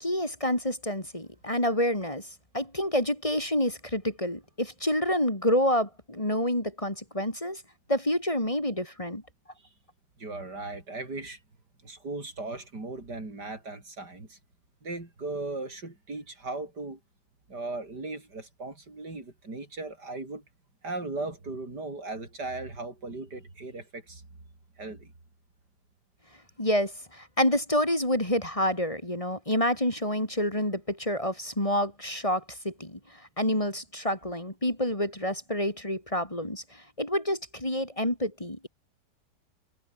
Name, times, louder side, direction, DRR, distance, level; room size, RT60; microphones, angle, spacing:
voice 1, 0.0-2.2 2.5-7.6 7.9-9.2 26.6-33.0 33.4-36.6 37.0-38.7, left 1 dB, 20° left, 3.7 m, -28 dB
voice 2, 10.2-11.4 11.8-14.4 14.8-17.0 17.5-20.4 20.8-24.2 24.8-25.1, right 2 dB, 80° right, 6.1 m, -37 dB
omnidirectional pair, 1.8 m